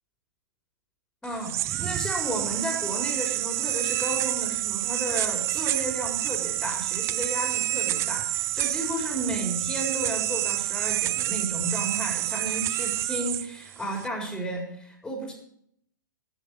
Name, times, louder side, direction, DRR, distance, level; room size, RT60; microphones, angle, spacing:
voice 1, 1.2-15.3, right 1 dB, 5° left, 1 dB, 4.1 m, -33 dB
sound 1, 1.2-14.1, right 15 dB, 25° right, 0.5 m, -28 dB
12.0 x 9.5 x 7.8 m, 0.68 s
figure-of-eight pair, 110°, 11 cm